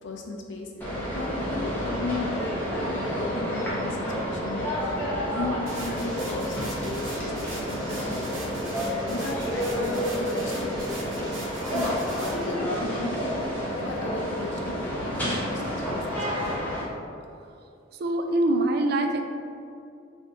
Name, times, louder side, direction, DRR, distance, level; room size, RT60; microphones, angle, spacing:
voice 1, 0.0-8.2 9.1-13.4 13.8-16.4, left 2 dB, 70° left, 1 dB, 0.5 m, -36 dB
sound 1, 0.8-16.8, equal, 10° left, 0.8 m, -30 dB
sound 2, 5.7-12.5, right 2 dB, 85° right, 0.8 m, -41 dB
voice 2, 18.0-19.2, right 1 dB, 55° right, 5 dB, 0.3 m, -24 dB
3.4 x 2.7 x 3.8 m, 2.5 s
head